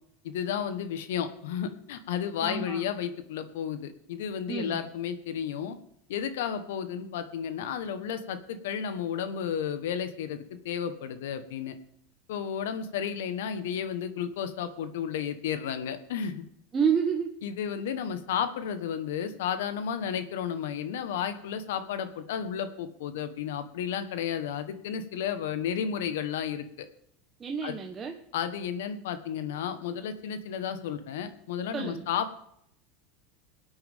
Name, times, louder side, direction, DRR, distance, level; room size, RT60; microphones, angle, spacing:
voice 1, 0.2-5.8 6.1-11.8 12.3-16.4 17.4-26.9 27.6-27.7 28.3-32.3, left 8 dB, 80° left, 11 dB, 1.2 m, -32 dB
voice 2, 2.4-2.8 4.5-4.8 16.7-17.3 27.4-28.2 31.7-32.1, right 6 dB, 25° right, 2 dB, 1.1 m, -29 dB
22.0 x 8.8 x 3.6 m, 0.73 s
supercardioid pair, 115°, 0 cm